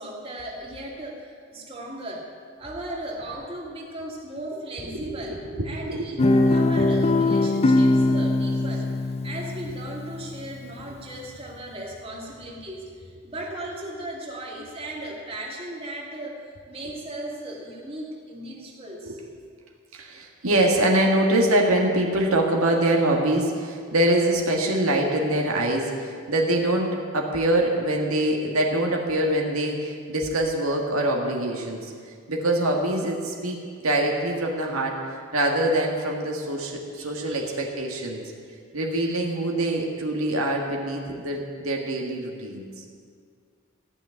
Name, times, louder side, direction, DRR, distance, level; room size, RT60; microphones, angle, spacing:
voice 1, 0.0-2.2 2.6-8.9 9.2-16.4 16.7-19.2 37.0-37.6, right 1 dB, 30° right, -3 dB, 2.3 m, -37 dB
voice 2, 4.9-6.1 6.8-6.9 19.0-19.2 19.9-31.9 32.3-38.2 38.7-42.7, right 1 dB, 90° right, 0 dB, 1.7 m, -24 dB
Guitar, 6.2-10.5, left 2 dB, 30° left, 0.4 m, -21 dB
14.5 x 6.1 x 9.4 m, 2.1 s
head